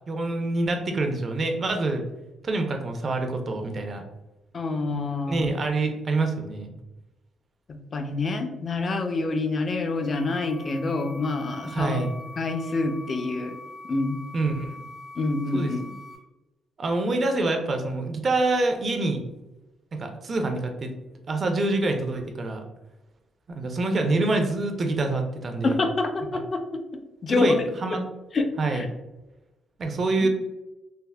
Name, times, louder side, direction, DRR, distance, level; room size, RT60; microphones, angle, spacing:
voice 1, 0.1-2.0 2.4-4.0 5.3-6.7 11.6-12.1 14.3-14.7 15.5-15.7 16.8-19.2 19.9-20.9 21.3-22.6 23.5-25.8 26.3-26.4 27.3-28.0 28.6-28.8 29.8-30.3, right 2 dB, 45° right, 4 dB, 0.5 m, -26 dB
voice 2, 4.5-5.5 7.7-12.0 12.4-13.5 13.9-14.2 15.2-15.9 25.6-26.8 27.2-27.6 27.9-28.0 28.3-28.9 30.2-30.3, left 3 dB, 40° left, 6 dB, 0.4 m, -27 dB
sound 1, 9.7-16.2, left 2 dB, 80° left, 0.8 m, -43 dB
3.4 x 2.0 x 2.2 m, 1.0 s
cardioid pair, 90°, 0 cm